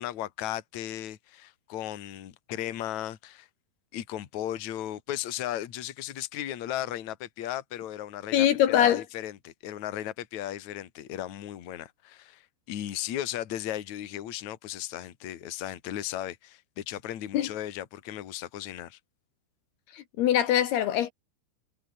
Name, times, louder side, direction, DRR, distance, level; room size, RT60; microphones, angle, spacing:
voice 1, 0.0-3.5 3.9-19.0, left 12 dB, 50° left, 2.7 m, -36 dB
voice 2, 8.3-9.0 17.3-17.5 19.9-21.1, left 11 dB, 70° left, 3.1 m, -23 dB
omnidirectional pair, 5.1 m